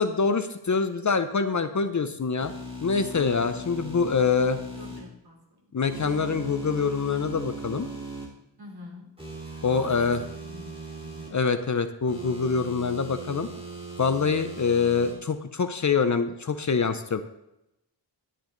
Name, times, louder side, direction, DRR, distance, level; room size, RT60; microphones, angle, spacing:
voice 1, 0.0-2.5 2.8-4.6 5.7-7.9 9.6-10.2 11.3-13.5 14.0-17.2, left 5 dB, 40° left, 10 dB, 0.7 m, -25 dB
sound 1, 2.4-5.0 5.9-8.2 9.2-11.3 12.1-15.1, right 1 dB, 10° right, 3.7 m, -38 dB
voice 2, 4.7-5.4 5.7-5.8 8.6-9.1 9.4-11.3, left 1 dB, 55° right, -1 dB, 3.7 m, -46 dB
11.5 x 10.0 x 3.9 m, 0.86 s
wide cardioid pair, 140°, 45 cm